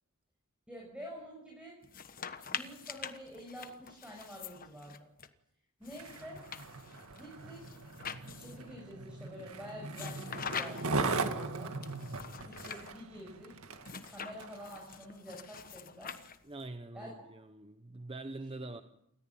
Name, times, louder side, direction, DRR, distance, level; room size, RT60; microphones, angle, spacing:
voice 1, 0.7-1.8 2.5-5.1 5.8-6.4 7.1-7.7 8.2-11.8 12.3-13.5 14.0-16.2 16.9-17.3, equal, 5° right, -2 dB, 6.5 m, -48 dB
sound 1, 1.8-5.3 5.8-8.7 9.9-11.1 11.8-12.9 13.8-16.6, left 7 dB, 40° left, 1.2 m, -45 dB
Skateboard, 5.8-14.7 15.3-15.4, right 3 dB, 75° right, 1.9 m, -39 dB
voice 2, 16.4-18.8, right 2 dB, 25° right, 8 dB, 0.9 m, -44 dB
28.0 x 14.5 x 9.1 m, 0.80 s
head